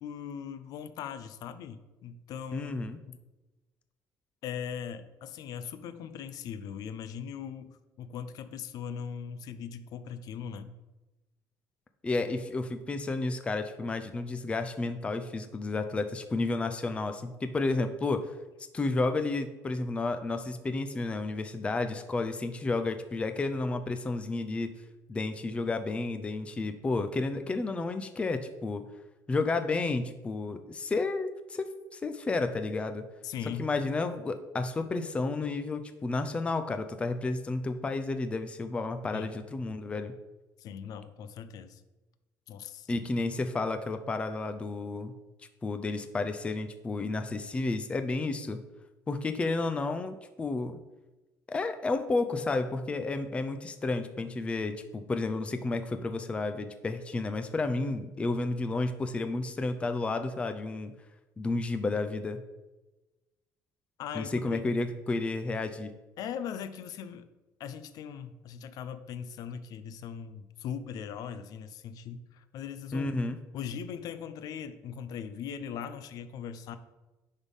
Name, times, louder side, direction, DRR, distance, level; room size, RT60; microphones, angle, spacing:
voice 1, 0.0-2.7 3.1-3.2 4.4-10.7 33.2-33.6 39.1-39.3 40.6-41.8 42.5-42.9 64.0-64.6 66.2-67.3 67.6-73.1 73.5-76.8, left 8 dB, 60° left, 11 dB, 0.6 m, -40 dB
voice 2, 2.5-3.0 12.0-18.3 18.7-24.7 25.1-28.8 29.3-33.0 33.6-40.1 42.9-45.1 45.6-48.6 49.1-50.8 51.5-60.9 61.4-62.4 64.1-65.9 72.9-73.4, left 3 dB, 15° left, 8 dB, 0.5 m, -31 dB
10.0 x 3.6 x 5.4 m, 1.1 s
cardioid pair, 150°, 7 cm